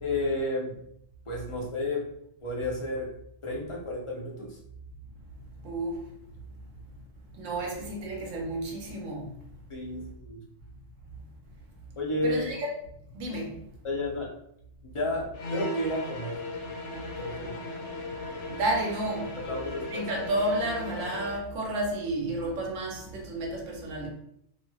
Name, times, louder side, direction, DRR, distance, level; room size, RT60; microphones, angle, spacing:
voice 1, 0.0-0.8 1.3-2.1 2.4-4.6 9.7-10.4 12.0-12.4 13.8-14.3 14.9-16.4 17.0-17.6 19.4-20.1, left 1 dB, 35° left, -2 dB, 0.5 m, -32 dB
voice 2, 5.6-6.0 7.4-9.3 12.2-12.7 13.1-13.5 18.5-19.3 19.9-24.1, right 1 dB, 90° right, 0 dB, 1.1 m, -31 dB
sound 1, 15.3-21.5, left 2 dB, 80° left, 0.9 m, -37 dB
3.0 x 2.6 x 2.3 m, 0.72 s
omnidirectional pair, 1.2 m